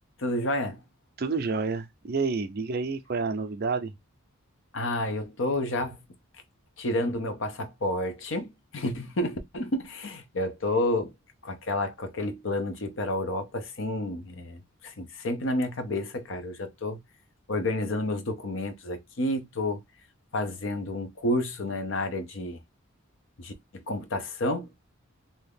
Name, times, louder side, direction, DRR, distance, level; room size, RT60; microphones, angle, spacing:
voice 1, 0.2-0.8 4.7-6.0 6.8-11.1 11.4-17.0 17.5-19.8 20.3-22.6 23.4-24.7, left 1 dB, 60° left, 0.6 m, -30 dB
voice 2, 1.2-3.9, right 4 dB, 45° right, 0.4 m, -29 dB
2.7 x 2.3 x 3.3 m
head